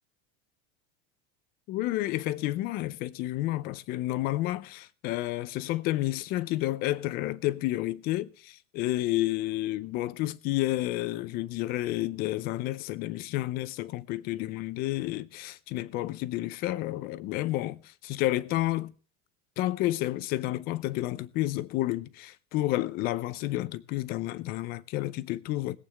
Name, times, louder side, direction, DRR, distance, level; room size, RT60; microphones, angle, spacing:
voice 1, 1.7-18.9 19.6-25.8, left 16 dB, 30° left, 0.5 m, -30 dB
21.0 x 8.4 x 3.4 m
supercardioid pair, 175°, 33 cm